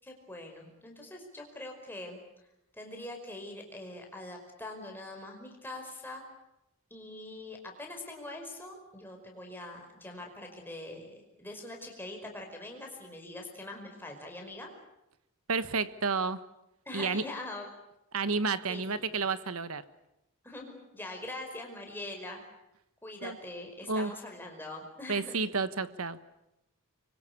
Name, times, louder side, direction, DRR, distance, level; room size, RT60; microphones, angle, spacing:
voice 1, 0.0-2.5 2.7-6.2 6.9-14.7 16.9-17.7 18.7-19.2 20.4-22.4 23.0-25.4, left 2 dB, 10° left, 2 dB, 5.3 m, -43 dB
voice 2, 15.5-16.4 16.9-17.2 18.1-19.8 23.2-23.4 23.9-24.1 25.1-26.2, right 4 dB, 70° right, 13 dB, 1.3 m, -31 dB
25.0 x 24.0 x 8.6 m, 0.88 s
head